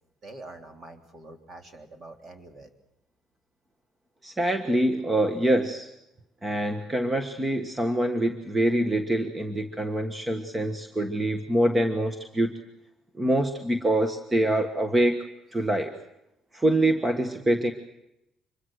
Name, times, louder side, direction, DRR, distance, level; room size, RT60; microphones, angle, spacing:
voice 1, 0.2-2.7, right 2 dB, 40° right, 5 dB, 3.5 m, -45 dB
voice 2, 4.2-5.9 6.4-12.5 13.2-15.2 15.5-15.9 16.5-17.7, right 1 dB, 15° right, 6 dB, 1.5 m, -25 dB
25.5 x 22.0 x 6.5 m, 0.87 s
cardioid pair, 130°, 0 cm